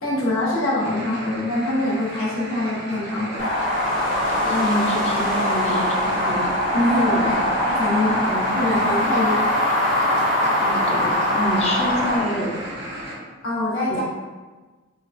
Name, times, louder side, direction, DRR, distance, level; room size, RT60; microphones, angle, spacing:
voice 1, 0.0-3.5 6.7-8.2 8.5-9.5 13.4-14.0, left 1 dB, 85° left, -7 dB, 0.8 m, -24 dB
sound 1, 0.8-13.2, right 1 dB, 55° right, 0.6 m, -34 dB
sound 2, 3.4-12.2, left 1 dB, 65° left, 1.3 m, -22 dB
voice 2, 4.4-6.6 7.1-7.3 8.2-8.5 10.6-12.5 13.9-14.0, left 1 dB, 35° left, -2 dB, 0.5 m, -27 dB
3.6 x 2.2 x 2.5 m, 1.3 s
head